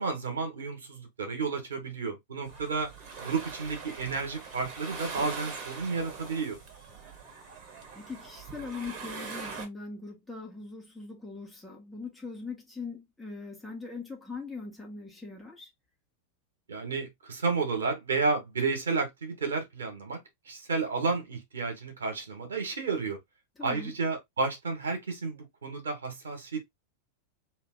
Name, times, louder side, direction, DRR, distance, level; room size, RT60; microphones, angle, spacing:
voice 1, 0.0-2.9 3.2-6.6 16.7-20.2 20.5-23.2 23.6-26.6, right 4 dB, 70° right, 1.6 m, -31 dB
sound 1, 2.4-9.7, right 4 dB, 40° right, 1.5 m, -42 dB
voice 2, 7.9-15.7 23.6-23.9, left 4 dB, 10° left, 1.5 m, -41 dB
3.3 x 2.9 x 3.8 m
figure-of-eight pair, 90°, 0 cm